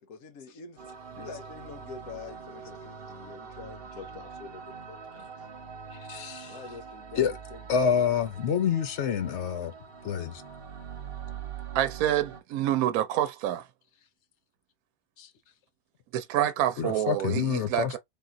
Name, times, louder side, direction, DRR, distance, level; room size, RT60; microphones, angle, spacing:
voice 1, 0.0-5.3 6.4-7.7, left 5 dB, 75° left, 1.3 m, -46 dB
sound 1, 0.8-12.4, right 6 dB, 45° right, 1.0 m, -43 dB
voice 2, 6.1-6.6 7.2-7.3 7.7-9.7 10.0-10.3 15.2-15.3 16.8-17.9, left 7 dB, 60° left, 0.9 m, -27 dB
voice 3, 11.7-13.7 16.1-18.0, right 12 dB, 80° right, 1.0 m, -27 dB
3.6 x 2.8 x 3.7 m
omnidirectional pair, 1.5 m